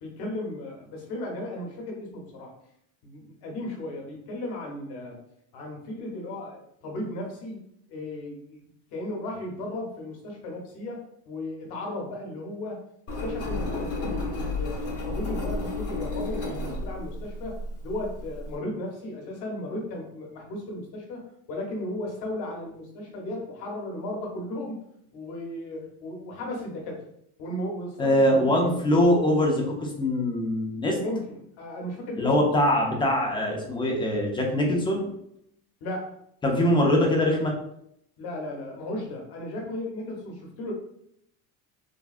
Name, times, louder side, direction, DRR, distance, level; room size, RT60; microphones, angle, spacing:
voice 1, 0.0-2.5 3.0-5.2 5.5-7.6 7.9-12.8 13.2-24.8 25.1-27.1 27.4-28.8 30.9-32.4 35.8-36.1 36.4-36.7 38.2-40.7, left 1 dB, 65° left, 0 dB, 1.1 m, -35 dB
Engine, 13.1-18.6, left 2 dB, 35° left, 0.9 m, -32 dB
voice 2, 28.0-31.0 32.2-35.1 36.4-37.5, left 1 dB, 10° left, 0 dB, 0.4 m, -23 dB
3.5 x 2.2 x 2.4 m, 0.73 s
cardioid pair, 145°, 41 cm